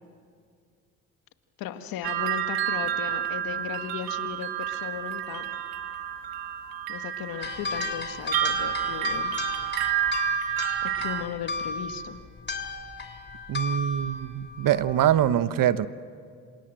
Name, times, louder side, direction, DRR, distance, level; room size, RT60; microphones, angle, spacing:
voice 1, 1.6-5.4 6.9-9.3 10.8-12.2, left 9 dB, 75° left, 8 dB, 1.8 m, -36 dB
sound 1, 2.0-11.2, right 11 dB, 80° right, 2.1 m, -30 dB
sound 2, 7.4-15.3, left 3 dB, 30° left, 3.4 m, -34 dB
voice 2, 13.5-15.9, right 11 dB, 65° right, 13 dB, 1.2 m, -24 dB
27.5 x 27.0 x 7.7 m, 2.2 s
supercardioid pair, 60°, 35 cm